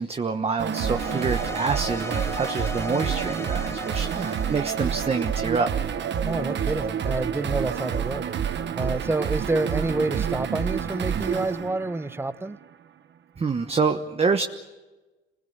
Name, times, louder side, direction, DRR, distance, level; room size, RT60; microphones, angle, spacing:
voice 1, 0.0-5.7 13.4-14.4, right 4 dB, 30° right, 1.2 m, -26 dB
sound 1, 0.6-12.6, right 8 dB, 65° right, 1.3 m, -28 dB
sound 2, 0.7-6.1, left 3 dB, 15° left, 1.0 m, -38 dB
voice 2, 6.2-8.2 8.8-12.6, right 2 dB, 10° right, 0.9 m, -28 dB
27.5 x 20.5 x 8.0 m
cardioid pair, 90°, 20 cm